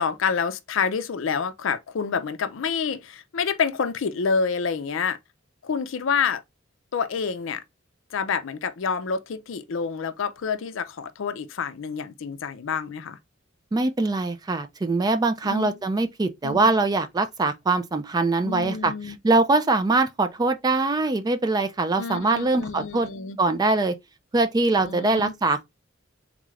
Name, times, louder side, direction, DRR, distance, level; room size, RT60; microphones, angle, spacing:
voice 1, 0.0-5.2 5.6-6.4 6.9-7.6 8.1-13.2 15.4-15.8 16.4-16.7 18.4-19.2 22.0-23.4 24.8-25.3, left 6 dB, 65° left, 0.4 m, -28 dB
voice 2, 13.7-18.9 19.2-23.1 23.4-24.0 24.3-25.6, right 3 dB, 20° right, 0.3 m, -22 dB
3.6 x 2.4 x 3.1 m
head